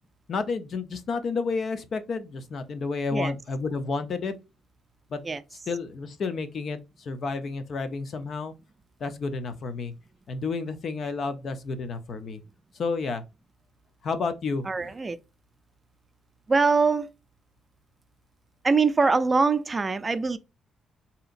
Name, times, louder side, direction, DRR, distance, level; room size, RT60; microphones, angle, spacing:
voice 1, 0.3-4.3 5.1-5.2 5.7-8.5 9.0-9.9 10.3-12.4 12.7-13.2 14.0-14.9, left 4 dB, 55° left, 0.6 m, -31 dB
voice 2, 14.6-15.2 16.5-17.1 18.6-20.4, right 4 dB, 30° right, 0.4 m, -23 dB
4.9 x 2.8 x 2.5 m
cardioid pair, 90°, 0 cm